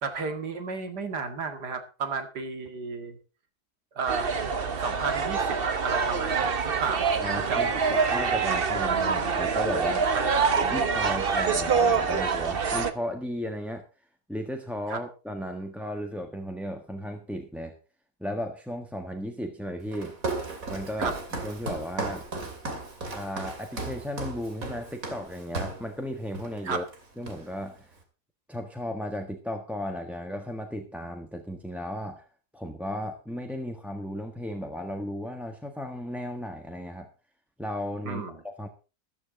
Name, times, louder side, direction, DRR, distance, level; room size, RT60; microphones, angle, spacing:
voice 1, 0.0-3.2 3.9-4.3 4.8-5.6 5.8-7.7 10.1-10.4 14.9-15.0 21.0-21.1 26.6-26.8 38.0-38.3, right 5 dB, 85° right, 7 dB, 2.6 m, -33 dB
sound 1, 4.1-12.9, right 5 dB, 40° right, 1.1 m, -25 dB
voice 2, 7.1-10.1 10.6-13.8 14.3-17.7 18.2-20.1 20.7-21.1 21.4-22.3 23.1-26.8 27.2-27.9 28.5-32.2 32.5-37.1 37.6-38.7, equal, ahead, 4 dB, 1.3 m, -35 dB
Walk footsteps, 19.9-25.9 26.3-26.6 26.9-27.7, right 3 dB, 55° right, 3.1 m, -35 dB
14.0 x 12.5 x 3.8 m, 0.32 s
omnidirectional pair, 1.7 m